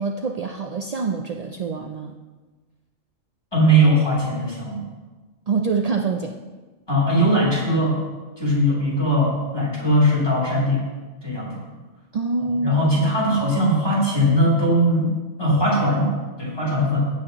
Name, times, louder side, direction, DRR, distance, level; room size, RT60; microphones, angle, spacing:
voice 1, 0.0-2.1 5.5-6.4 12.1-12.9, right 4 dB, 60° right, 3 dB, 0.4 m, -25 dB
voice 2, 3.5-4.8 6.9-8.0 8.4-10.8 11.2-11.6 12.5-15.1 15.4-16.1 16.4-17.1, equal, 20° left, -5 dB, 3.3 m, -19 dB
15.5 x 8.5 x 3.0 m, 1.3 s
omnidirectional pair, 1.3 m